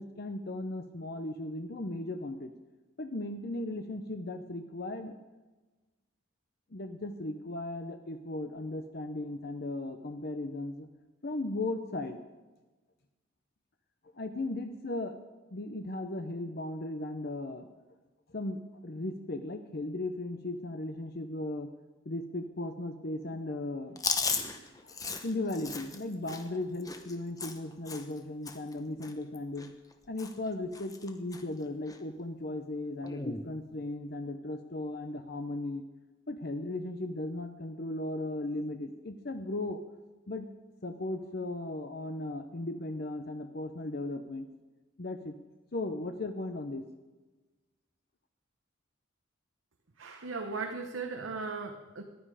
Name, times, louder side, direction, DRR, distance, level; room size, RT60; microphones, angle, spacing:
voice 1, 0.0-2.5 3.0-5.2 6.7-10.9 11.2-12.2 14.1-15.2 15.5-17.7 18.3-21.7 22.1-24.0 24.8-29.7 30.1-35.8 36.3-39.8 40.3-40.5 40.8-44.5 45.0-45.3 45.7-46.9, left 2 dB, 50° left, 7 dB, 0.7 m, -36 dB
Chewing mastication, 24.0-28.2 28.5-28.7 29.0-29.9 30.2-30.5 30.7-31.4 31.9-32.0 33.0-33.4, left 4 dB, 20° left, 1.0 m, -36 dB
voice 2, 50.0-52.0, right 4 dB, 80° right, 5 dB, 1.0 m, -37 dB
15.0 x 11.5 x 4.9 m, 1.2 s
head